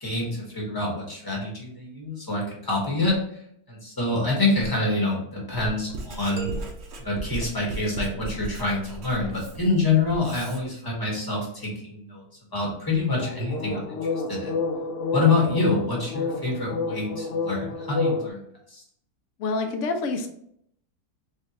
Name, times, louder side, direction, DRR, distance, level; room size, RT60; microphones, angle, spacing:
voice 1, 0.0-3.2 3.7-6.5 7.0-12.2 12.5-14.0 14.3-14.5 15.1-18.4 18.7-18.8, left 3 dB, 15° left, -3 dB, 1.1 m, -26 dB
sound 1, 3.1-3.2 4.6-4.7 5.5-6.1 6.5-6.9 7.3-7.5 8.2-8.4 9.2-9.5 13.1-18.3, left 3 dB, 90° left, 0.5 m, -30 dB
Writing, 5.6-10.6, right 2 dB, 55° right, 0.8 m, -37 dB
sound 2, 6.4-8.4, right 7 dB, 80° right, 1.2 m, -42 dB
voice 2, 19.4-20.3, left 3 dB, 60° left, 5 dB, 0.9 m, -27 dB
3.9 x 3.3 x 2.8 m, 0.70 s
omnidirectional pair, 1.7 m